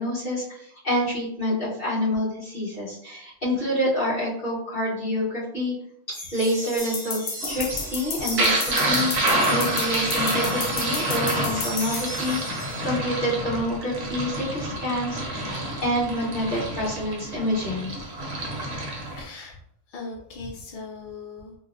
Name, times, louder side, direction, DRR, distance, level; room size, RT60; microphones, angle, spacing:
voice 1, 0.0-5.7 6.1-12.4 12.8-18.0, equal, 40° left, -11 dB, 1.8 m, -27 dB
sound 1, 6.1-13.0, right 1 dB, 30° right, 0.8 m, -37 dB
sound 2, 6.8-12.0, left 5 dB, 85° left, 1.0 m, -31 dB
sound 3, 7.4-19.2, right 1 dB, 60° right, 0.9 m, -28 dB
voice 2, 12.4-12.9 19.1-19.6 19.9-21.6, left 3 dB, 65° left, -1 dB, 0.5 m, -40 dB
3.9 x 2.0 x 2.5 m, 0.73 s
omnidirectional pair, 1.3 m